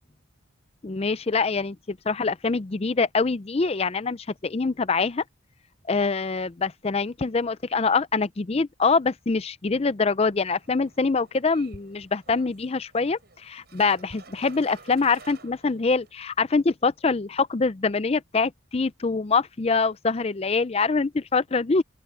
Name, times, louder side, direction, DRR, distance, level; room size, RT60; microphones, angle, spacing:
voice 1, 0.8-5.2 5.9-21.8, left 4 dB, 30° left, 0.4 m, -24 dB
sound 1, 10.3-16.1, right 3 dB, 50° right, 6.6 m, -51 dB
open air
head